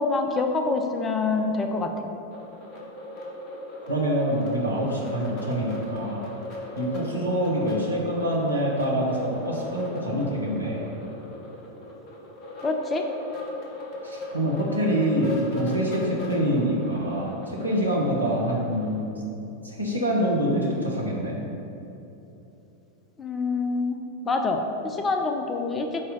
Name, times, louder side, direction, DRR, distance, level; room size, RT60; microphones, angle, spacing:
voice 1, 0.0-1.9 12.6-13.1 23.2-24.0 24.2-26.0, left 3 dB, 20° left, 4 dB, 0.6 m, -26 dB
sound 1, 2.3-19.0, left 2 dB, 40° left, 1.4 m, -37 dB
voice 2, 3.8-6.2 6.8-10.8 14.0-19.2 19.6-21.4, equal, 85° right, -4 dB, 1.4 m, -26 dB
8.8 x 2.9 x 5.5 m, 3.0 s
figure-of-eight pair, 90°, 0 cm